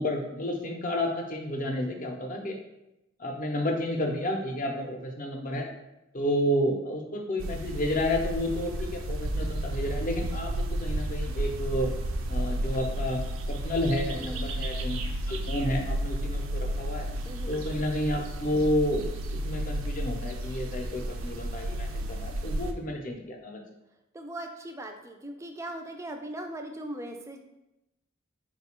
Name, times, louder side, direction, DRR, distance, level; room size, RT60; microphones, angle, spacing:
voice 1, 0.0-2.6 3.2-5.7 6.1-11.9 12.3-13.2 13.5-15.0 15.3-17.1 17.5-19.0 19.3-23.6, left 1 dB, 40° left, 2 dB, 0.6 m, -30 dB
sound 1, 7.4-22.7, right 1 dB, 85° right, 0.4 m, -32 dB
voice 2, 17.2-17.7 24.1-27.4, right 1 dB, 15° right, 4 dB, 0.3 m, -39 dB
4.0 x 2.2 x 4.3 m, 0.90 s
head